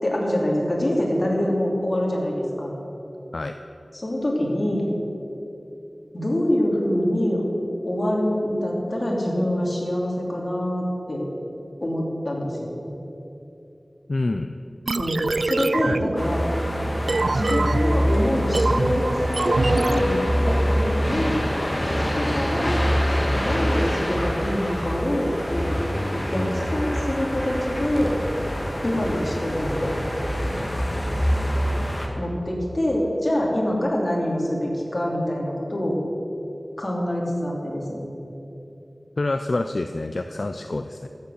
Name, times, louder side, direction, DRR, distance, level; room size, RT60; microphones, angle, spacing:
voice 1, 0.0-2.7 3.9-4.9 6.1-7.4 7.8-11.3 11.8-12.7 15.0-16.4 17.3-21.4 22.0-22.8 23.4-25.7 26.3-28.2 28.8-29.9 32.2-36.0 36.8-38.1, left 1 dB, 45° left, -2 dB, 3.0 m, -25 dB
voice 2, 14.1-14.5 39.2-41.1, left 2 dB, 65° left, 7 dB, 0.4 m, -27 dB
sound 1, 14.9-20.6, right 3 dB, 90° right, 0.3 m, -26 dB
sound 2, 16.2-32.1, equal, 20° left, 1.7 m, -25 dB
14.0 x 8.2 x 6.5 m, 2.8 s
wide cardioid pair, 60°, 0 cm